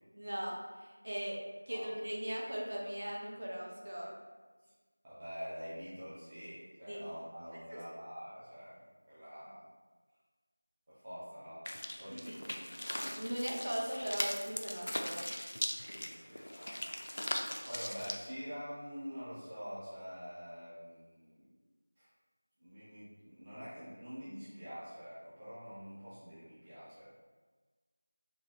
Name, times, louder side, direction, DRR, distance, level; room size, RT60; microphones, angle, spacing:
voice 1, 0.1-1.4 1.7-4.1 6.9-7.0 7.7-7.8 12.1-12.4 13.0-15.2, equal, 60° right, -2 dB, 0.7 m, -39 dB
voice 2, 5.0-9.7 10.9-12.5 15.9-16.9 17.6-21.5 22.0-22.1 22.6-27.1, equal, 10° right, -13 dB, 0.5 m, -46 dB
sound 1, 11.7-18.2, left 1 dB, 60° left, 0.3 m, -40 dB
4.0 x 2.4 x 2.9 m, 1.4 s
figure-of-eight pair, 180°, 0 cm